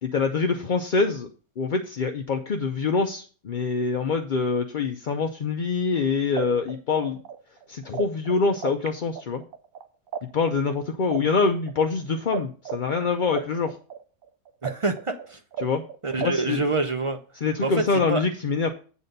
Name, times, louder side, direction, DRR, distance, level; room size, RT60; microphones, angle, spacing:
voice 1, 0.0-1.3 1.6-7.2 7.7-9.4 10.3-13.7 15.6-15.8 16.2-16.7 17.4-18.7, left 4 dB, 50° left, 4 dB, 0.6 m, -25 dB
sound 1, 5.9-6.0 6.4-8.9 9.1-12.4 12.6-16.5, right 8 dB, 70° right, 1.1 m, -34 dB
voice 2, 14.6-15.4 16.0-17.2 17.6-17.8 18.1-18.2, right 3 dB, 45° right, 7 dB, 0.4 m, -26 dB
8.2 x 4.2 x 6.6 m, 0.39 s
omnidirectional pair, 1.5 m